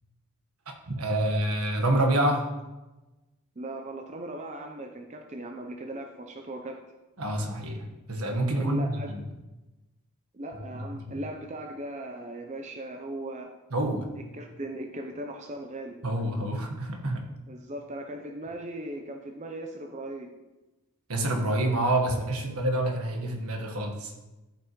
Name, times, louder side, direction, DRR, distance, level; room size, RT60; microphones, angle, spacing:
voice 1, 1.0-2.5 7.2-9.2 10.7-11.2 13.7-14.0 16.0-17.2 21.1-24.1, right 1 dB, 80° right, 3 dB, 1.4 m, -27 dB
voice 2, 3.6-6.8 8.5-9.1 10.3-13.5 14.2-16.0 17.5-20.3, right 1 dB, 30° right, 3 dB, 0.6 m, -38 dB
13.5 x 5.6 x 3.1 m, 1.1 s
head